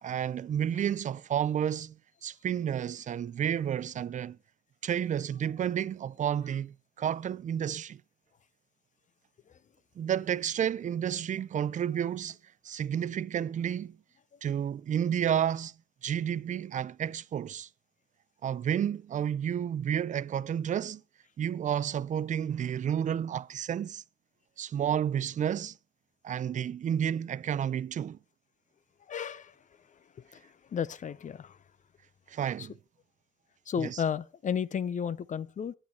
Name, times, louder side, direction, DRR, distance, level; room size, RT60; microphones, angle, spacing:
voice 1, 0.0-4.4 4.8-8.0 10.0-12.4 12.6-14.0 14.4-15.7 16.0-17.7 18.4-21.0 21.4-24.0 24.6-25.8 26.2-28.2 32.3-32.7 33.8-34.0, right 9 dB, 40° right, 0.4 m, -31 dB
voice 2, 29.1-29.6 29.9-30.0 30.3-31.6 32.6-32.7 33.7-35.7, left 7 dB, 40° left, 0.5 m, -33 dB
9.4 x 8.9 x 4.4 m
cardioid pair, 90°, 20 cm